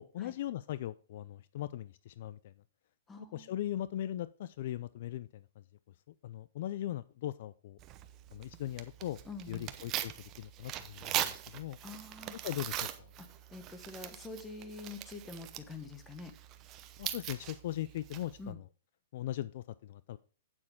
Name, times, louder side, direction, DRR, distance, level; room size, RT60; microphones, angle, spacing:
voice 1, 0.0-2.5 3.2-5.4 6.2-7.8 8.3-9.2 9.5-11.8 12.4-13.1 17.0-18.6 19.1-20.2, left 13 dB, 50° left, 16 dB, 0.3 m, -39 dB
voice 2, 3.1-3.5 9.2-9.7 11.8-12.4 13.2-16.3 18.4-18.6, left 3 dB, 10° left, 8 dB, 1.3 m, -46 dB
Tearing, 7.8-18.5, right 12 dB, 25° right, 0.8 m, -41 dB
8.8 x 8.7 x 3.6 m, 0.39 s
hypercardioid pair, 160°, 0 cm